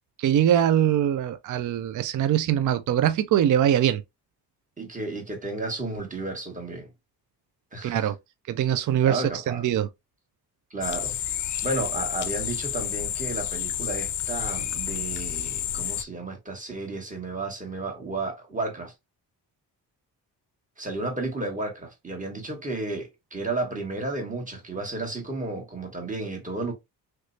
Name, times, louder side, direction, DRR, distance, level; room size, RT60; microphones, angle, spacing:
voice 1, 0.2-4.0 7.8-8.2 8.5-9.9, right 10 dB, 50° right, 0.4 m, -22 dB
voice 2, 4.8-6.9 7.7-8.1 9.0-9.7 10.7-11.2 11.6-18.9 20.8-26.7, right 2 dB, 20° right, 1.5 m, -32 dB
sound 1, 10.8-16.0, left 10 dB, 50° left, 0.5 m, -30 dB
3.1 x 3.1 x 2.6 m
cardioid pair, 70°, 40 cm